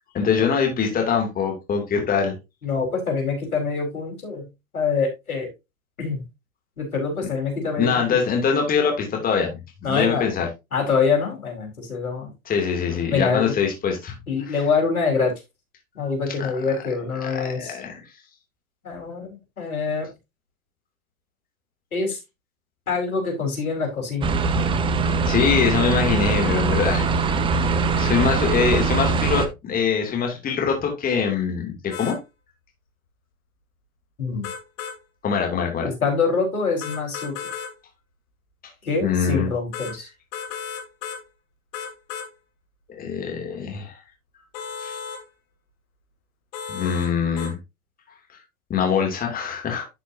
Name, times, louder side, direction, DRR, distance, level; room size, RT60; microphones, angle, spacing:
voice 1, 0.1-2.3 7.8-10.5 12.4-14.1 14.5-14.6 17.2-18.0 25.2-27.1 28.0-32.2 35.2-35.9 39.0-39.5 42.9-44.0 44.8-45.0 46.7-47.6 48.7-49.9, left 6 dB, 20° left, 2 dB, 2.9 m, -23 dB
voice 2, 2.6-4.5 4.7-5.5 6.0-6.2 6.8-8.2 9.8-10.3 10.7-12.3 13.1-13.5 14.3-15.3 15.9-17.8 18.8-20.1 21.9-22.2 22.9-24.3 34.2-34.5 35.8-37.3 38.8-40.1, left 5 dB, 90° left, 2 dB, 4.7 m, -25 dB
sound 1, 24.2-29.5, right 4 dB, 10° right, 0.7 m, -22 dB
sound 2, 31.9-32.2 34.4-35.0 36.8-37.7 39.7-39.9 40.3-41.2 41.7-42.3 44.5-45.2 46.5-47.1 47.4-47.5, left 7 dB, 40° left, 2.9 m, -33 dB
11.0 x 6.1 x 2.8 m, 0.23 s
hypercardioid pair, 125°, 42 cm